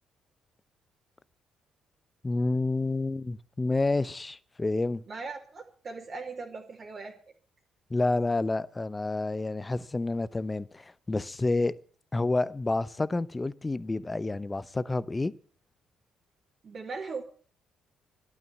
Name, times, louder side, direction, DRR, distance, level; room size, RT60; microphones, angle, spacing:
voice 1, 2.2-5.0 7.9-11.7 12.1-15.3, left 2 dB, 20° left, 0.7 m, -29 dB
voice 2, 5.1-7.1 16.6-17.2, right 4 dB, 45° right, 2.6 m, -39 dB
12.0 x 9.8 x 8.1 m
hypercardioid pair, 45°, 0 cm